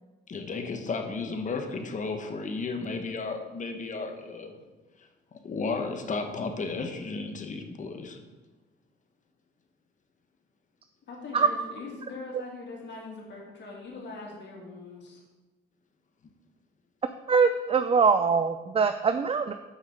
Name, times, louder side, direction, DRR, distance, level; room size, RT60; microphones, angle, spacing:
voice 1, 0.3-4.6 5.0-5.1 5.4-8.2, left 4 dB, 40° left, 5 dB, 1.1 m, -33 dB
voice 2, 11.1-15.2, left 3 dB, 65° left, -2 dB, 2.6 m, -42 dB
voice 3, 17.3-19.5, right 5 dB, 30° right, 9 dB, 0.4 m, -23 dB
6.5 x 5.4 x 6.4 m, 1.2 s
cardioid pair, 90°, 20 cm